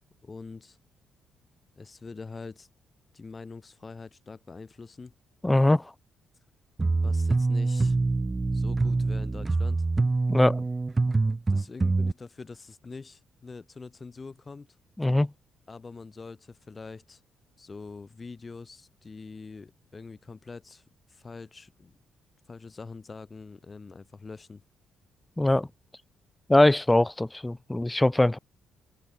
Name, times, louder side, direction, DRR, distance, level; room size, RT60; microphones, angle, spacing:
voice 1, 0.2-0.8 1.8-2.7 3.1-5.1 6.9-8.0 8.5-9.8 11.5-14.8 15.7-17.2 17.6-20.8 21.1-22.0 22.5-24.6, left 4 dB, 30° left, 3.7 m, -44 dB
voice 2, 5.4-5.9 10.3-10.6 15.0-15.3 25.4-25.7 26.5-28.4, left 1 dB, 10° left, 0.3 m, -22 dB
sound 1, 6.8-12.1, right 3 dB, 20° right, 1.1 m, -25 dB
open air
cardioid pair, 90°, 0 cm